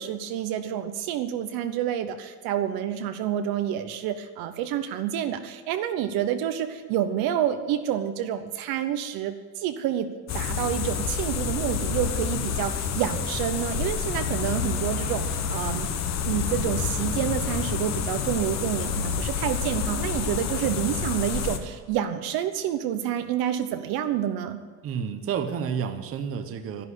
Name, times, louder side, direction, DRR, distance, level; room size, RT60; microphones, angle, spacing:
voice 1, 0.0-15.9 16.2-24.6, right 10 dB, 55° right, 9 dB, 1.0 m, -28 dB
sound 1, 10.3-21.6, left 7 dB, 40° left, 1.1 m, -28 dB
voice 2, 24.8-26.9, right 7 dB, 30° right, 8 dB, 1.0 m, -30 dB
12.0 x 11.0 x 8.3 m, 1.5 s
cardioid pair, 165°, 42 cm